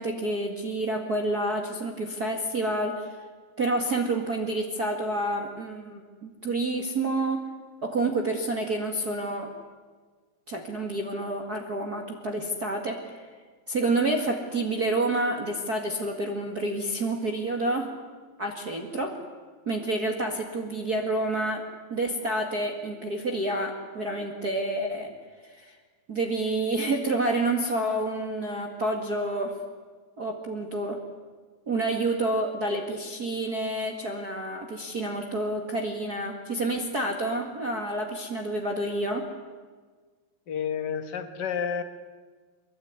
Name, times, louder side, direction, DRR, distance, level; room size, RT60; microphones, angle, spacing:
voice 1, 0.0-3.1 3.6-7.4 7.8-9.5 10.5-13.2 13.7-17.9 18.4-19.1 19.7-21.6 21.9-25.1 25.4-25.8 26.1-29.5 30.2-31.0 31.7-39.3, right 2 dB, 35° right, 2 dB, 2.0 m, -29 dB
voice 2, 40.5-41.8, left 7 dB, 50° left, 9 dB, 1.2 m, -30 dB
24.5 x 22.0 x 9.7 m, 1.5 s
omnidirectional pair, 4.1 m